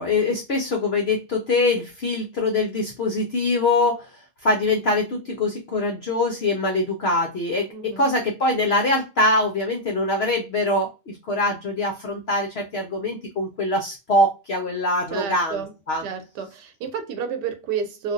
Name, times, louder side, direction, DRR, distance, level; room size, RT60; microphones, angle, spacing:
voice 1, 0.0-4.1 4.4-16.0, left 2 dB, 75° left, 0.5 m, -23 dB
voice 2, 7.7-8.1 15.1-15.7 16.0-18.1, right 6 dB, 80° right, 1.3 m, -30 dB
3.3 x 2.5 x 2.4 m
omnidirectional pair, 1.8 m